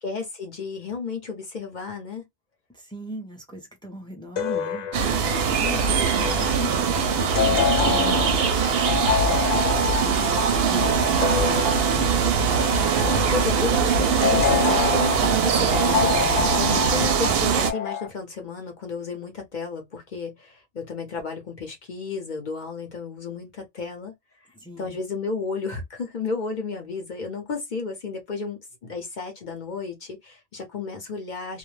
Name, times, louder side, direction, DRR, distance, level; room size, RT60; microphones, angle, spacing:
voice 1, 0.0-2.3 13.0-24.1 24.8-31.6, left 4 dB, 45° left, 0.7 m, -32 dB
voice 2, 2.7-12.2 24.5-25.0, equal, 5° left, 0.3 m, -40 dB
sound 1, 4.4-18.1, left 8 dB, 90° left, 1.0 m, -28 dB
sound 2, 4.9-17.7, right 6 dB, 65° right, 0.7 m, -22 dB
2.3 x 2.1 x 3.0 m
omnidirectional pair, 1.3 m